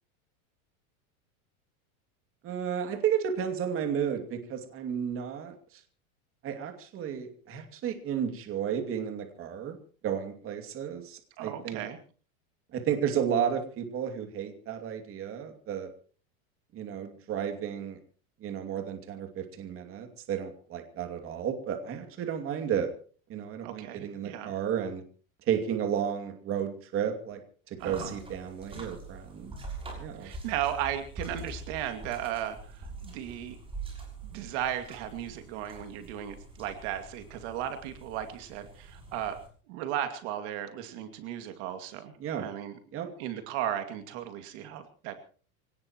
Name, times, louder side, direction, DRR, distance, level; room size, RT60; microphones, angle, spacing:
voice 1, 2.4-5.8 6.4-9.8 10.0-11.9 12.7-15.9 16.7-18.0 18.4-22.9 23.3-25.0 25.5-27.4 27.7-29.5 30.0-30.3 42.2-42.5 42.9-43.1, right 8 dB, 30° right, 5 dB, 2.6 m, -32 dB
voice 2, 11.4-12.0 23.6-24.5 27.8-28.1 30.2-33.6 34.2-39.4 39.7-42.8 43.2-45.2, right 11 dB, 55° right, 7 dB, 2.4 m, -36 dB
sound 1, 27.8-39.5, right 2 dB, 15° right, 6.5 m, -44 dB
25.0 x 18.5 x 3.0 m, 0.41 s
supercardioid pair, 150°, 42 cm